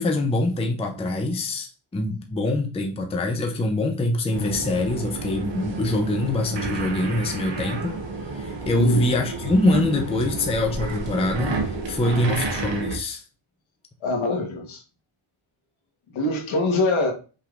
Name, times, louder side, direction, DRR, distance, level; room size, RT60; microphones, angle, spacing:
voice 1, 0.0-8.0 8.3-13.2, left 1 dB, 10° left, 0.5 m, -24 dB
sound 1, 4.3-13.0, right 3 dB, 60° right, 1.1 m, -30 dB
voice 2, 8.7-9.1 14.0-14.8 16.1-17.1, left 2 dB, 70° left, 1.3 m, -24 dB
5.7 x 3.4 x 2.5 m
wide cardioid pair, 140°, 49 cm